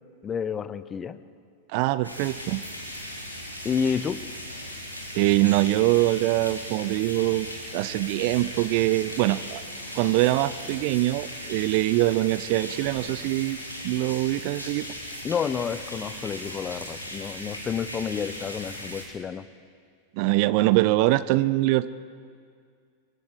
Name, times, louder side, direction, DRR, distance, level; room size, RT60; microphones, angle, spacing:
voice 1, 0.2-1.2 3.6-4.2 15.2-19.5, left 7 dB, 25° left, 15 dB, 0.8 m, -30 dB
voice 2, 1.7-2.6 5.1-7.5 7.7-9.6 9.9-13.6 13.8-14.9 20.2-21.9, right 18 dB, 45° right, 17 dB, 0.6 m, -23 dB
sound 1, 2.0-19.0, equal, 90° left, 4.2 m, -38 dB
27.0 x 23.5 x 4.9 m, 2.1 s
figure-of-eight pair, 90°, 0 cm